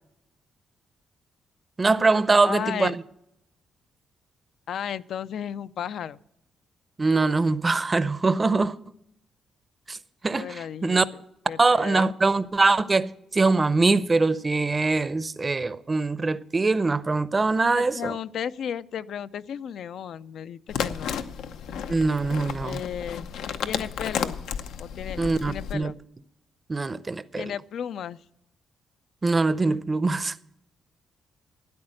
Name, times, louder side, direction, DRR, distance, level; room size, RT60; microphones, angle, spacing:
voice 1, 1.8-3.0 7.0-8.8 9.9-10.0 10.2-11.0 11.6-18.1 21.9-22.8 25.2-25.9 26.7-27.5 29.2-30.3, right 3 dB, 25° right, 0.6 m, -23 dB
voice 2, 2.4-3.0 4.7-6.2 10.4-11.0 11.5-12.1 17.7-21.2 22.6-23.3 23.6-24.4 24.8-26.0 27.4-28.2, left 9 dB, 70° left, 0.4 m, -34 dB
sound 1, 20.7-25.7, left 7 dB, 90° left, 0.8 m, -32 dB
13.0 x 9.6 x 6.4 m
cardioid pair, 110°, 0 cm